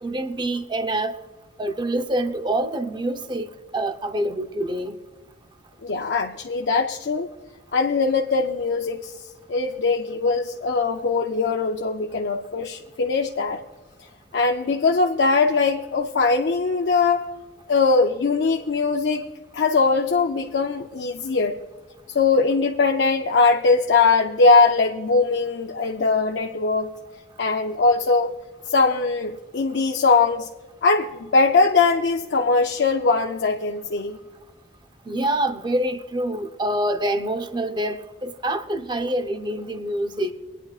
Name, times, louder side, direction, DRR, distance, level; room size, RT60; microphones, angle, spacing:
voice 1, 0.0-1.2 1.6-5.0 35.1-40.3, right 1 dB, 25° right, 7 dB, 0.6 m, -26 dB
voice 2, 5.8-7.3 7.7-9.2 9.5-13.6 14.3-17.3 17.7-19.3 19.5-21.6 22.1-26.9 27.4-28.3 28.7-30.5 30.8-34.2, left 4 dB, 75° left, 2 dB, 0.6 m, -21 dB
23.0 x 9.9 x 2.4 m, 1.3 s
head